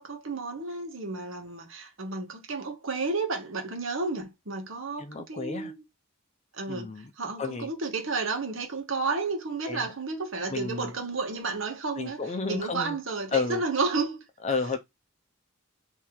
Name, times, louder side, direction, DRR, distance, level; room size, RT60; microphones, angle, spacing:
voice 1, 0.0-5.8 6.5-14.2, right 3 dB, 65° right, 1.2 m, -32 dB
voice 2, 5.0-5.7 6.7-7.1 7.4-7.7 9.7-9.9 10.5-10.9 12.0-13.0 13.3-13.6 14.4-14.8, left 4 dB, 30° left, 0.7 m, -31 dB
3.7 x 2.9 x 4.5 m
head